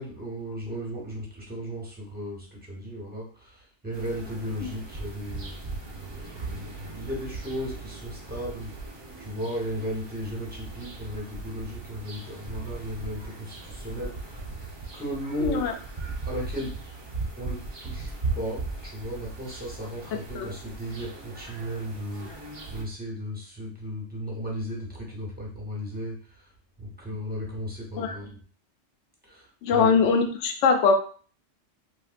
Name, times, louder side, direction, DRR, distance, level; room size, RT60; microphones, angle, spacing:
voice 1, 0.0-5.6 6.1-6.4 6.9-8.7 9.2-14.5 14.9-15.7 16.3-16.7 17.4-22.3 22.7-26.5 26.8-28.4 29.2-30.0, equal, 10° right, -2 dB, 0.8 m, -35 dB
sound 1, 3.9-22.8, right 3 dB, 45° right, 0.3 m, -38 dB
voice 2, 15.4-15.7 20.4-20.5 28.0-28.2 29.6-30.9, left 5 dB, 70° left, 5 dB, 0.9 m, -22 dB
3.4 x 2.5 x 2.5 m, 0.42 s
omnidirectional pair, 1.3 m